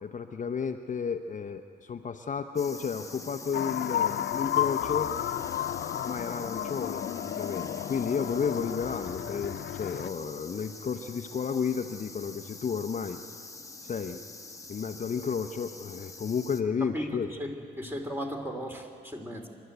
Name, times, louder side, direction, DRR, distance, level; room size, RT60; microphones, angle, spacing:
voice 1, 0.0-5.1 6.1-13.2 13.8-14.2 14.7-17.3, left 6 dB, 40° left, 7 dB, 0.8 m, -32 dB
sound 1, 2.6-16.6, left 3 dB, 15° left, 1.3 m, -45 dB
sound 2, 3.5-10.1, left 11 dB, 60° left, 0.6 m, -32 dB
voice 2, 16.8-19.5, equal, 10° right, 3 dB, 3.4 m, -36 dB
29.5 x 13.0 x 8.1 m, 2.3 s
cardioid pair, 90°, 20 cm